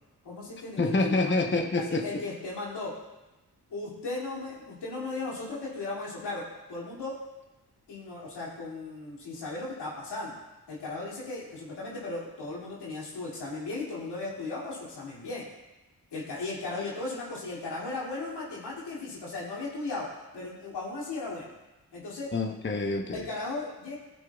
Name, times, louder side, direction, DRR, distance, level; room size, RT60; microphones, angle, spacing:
voice 1, 0.2-1.3 2.0-2.9 3.7-7.2 7.9-10.4 10.7-15.5 16.1-20.1 20.3-21.5 21.9-22.3 23.1-24.0, left 3 dB, 85° left, -5 dB, 2.8 m, -36 dB
voice 2, 0.8-2.2 22.3-23.3, left 3 dB, 30° left, 3 dB, 1.0 m, -27 dB
15.5 x 7.8 x 2.4 m, 1.1 s
cardioid pair, 45°, 40 cm